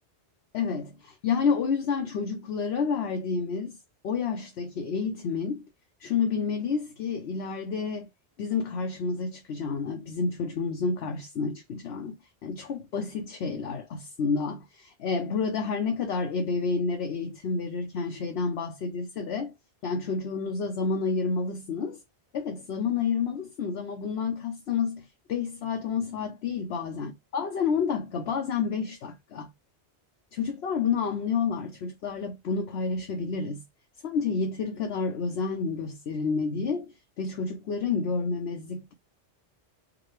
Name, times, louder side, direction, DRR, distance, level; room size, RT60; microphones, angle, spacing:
voice 1, 0.5-3.8 4.0-5.6 6.0-8.1 8.4-12.2 12.4-19.5 19.8-22.0 22.3-29.5 30.3-33.6 34.0-38.9, left 5 dB, 65° left, 1.0 m, -29 dB
4.9 x 2.2 x 3.1 m
omnidirectional pair, 1.2 m